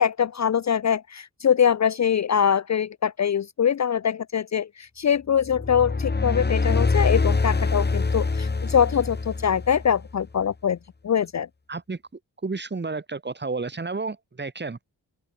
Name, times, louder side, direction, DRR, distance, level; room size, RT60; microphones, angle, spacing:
voice 1, 0.0-10.8 11.0-11.5, left 8 dB, 45° left, 0.5 m, -23 dB
sound 1, 5.4-10.1, left 3 dB, 25° left, 2.1 m, -24 dB
voice 2, 12.4-14.9, right 3 dB, 25° right, 2.4 m, -31 dB
open air
wide cardioid pair, 150°, 39 cm